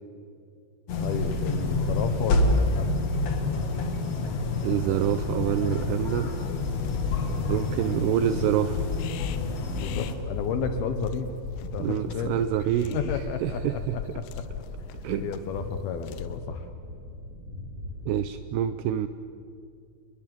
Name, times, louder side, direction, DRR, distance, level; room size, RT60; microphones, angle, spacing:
sound 1, 0.9-10.1, left 2 dB, 50° left, 2.0 m, -28 dB
sound 2, 0.9-18.4, left 1 dB, 35° right, 3.9 m, -42 dB
voice 1, 1.0-2.9 9.8-11.3 11.6-12.4 12.9-14.3 15.2-16.7, left 6 dB, 70° left, 8 dB, 2.5 m, -32 dB
voice 2, 4.6-6.3 7.5-8.8 11.8-13.0 13.4-14.0 15.0-15.3 18.1-19.1, right 11 dB, 80° right, 11 dB, 2.4 m, -26 dB
sound 3, 5.3-16.4, left 7 dB, 90° left, 3.4 m, -37 dB
28.0 x 21.0 x 7.7 m, 2.5 s
omnidirectional pair, 5.4 m